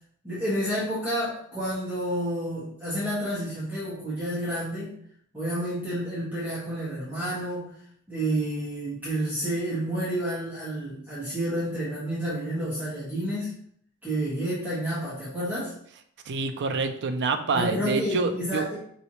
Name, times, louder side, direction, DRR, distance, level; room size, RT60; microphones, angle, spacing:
voice 1, 0.2-4.9 5.3-7.7 8.1-13.5 14.0-15.7 17.5-18.8, right 1 dB, 10° right, -11 dB, 1.5 m, -30 dB
voice 2, 16.3-18.6, right 4 dB, 55° right, 7 dB, 0.5 m, -27 dB
5.4 x 3.0 x 2.9 m, 0.65 s
head